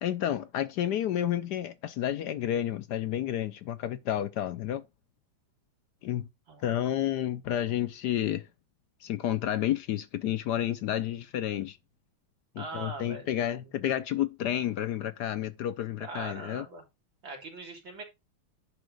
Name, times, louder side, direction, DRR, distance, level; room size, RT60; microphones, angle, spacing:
voice 1, 0.0-4.8 6.0-6.3 6.6-8.5 9.0-11.8 12.5-16.7, left 11 dB, 70° left, 1.0 m, -30 dB
voice 2, 12.6-13.3 13.6-13.7 16.0-16.8 17.2-18.0, right 3 dB, 70° right, 3.9 m, -41 dB
10.5 x 3.6 x 6.3 m
omnidirectional pair, 2.2 m